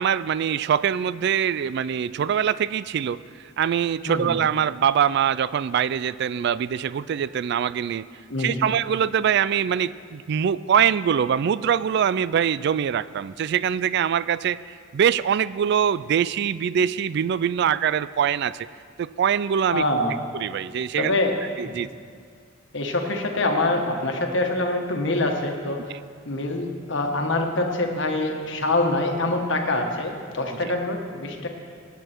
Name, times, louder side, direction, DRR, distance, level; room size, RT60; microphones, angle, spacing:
voice 1, 0.0-3.2 3.6-8.0 8.4-18.7 19.0-19.8 20.3-21.1 21.6-21.9, right 8 dB, 60° right, 17 dB, 0.3 m, -23 dB
voice 2, 8.3-8.7 19.7-20.2 21.0-21.4 21.6-21.7 22.7-25.9 26.2-31.5, left 2 dB, 65° left, 3 dB, 1.4 m, -25 dB
19.5 x 8.4 x 4.5 m, 2.1 s
head